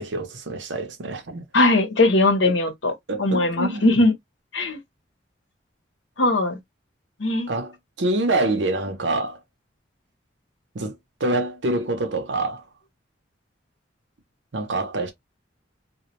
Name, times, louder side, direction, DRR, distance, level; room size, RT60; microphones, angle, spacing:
voice 1, 0.0-1.4 2.4-2.6 3.1-4.0 7.5-9.4 10.7-12.6 14.5-15.1, right 2 dB, 80° right, 0.7 m, -26 dB
voice 2, 1.5-2.9 3.2-4.1 4.5-4.8 6.2-6.6 7.2-7.5, left 2 dB, 80° left, 0.9 m, -19 dB
2.2 x 2.1 x 2.9 m
head